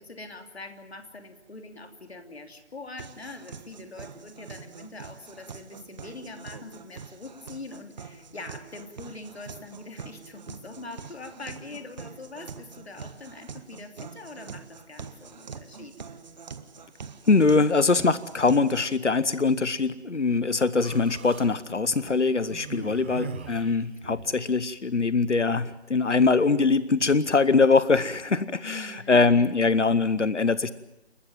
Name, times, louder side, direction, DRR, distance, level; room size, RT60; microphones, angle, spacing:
voice 1, 0.0-15.9 22.7-23.0 28.6-29.2, left 3 dB, 65° left, 6 dB, 3.2 m, -43 dB
sound 1, 3.0-19.0, right 6 dB, 40° right, 1.5 m, -44 dB
voice 2, 17.3-30.7, left 4 dB, 85° left, 17 dB, 1.1 m, -22 dB
Human voice, 20.8-21.5 22.4-24.4, right 5 dB, 10° right, 0.7 m, -40 dB
29.5 x 13.0 x 9.2 m, 0.93 s
figure-of-eight pair, 150°, 34 cm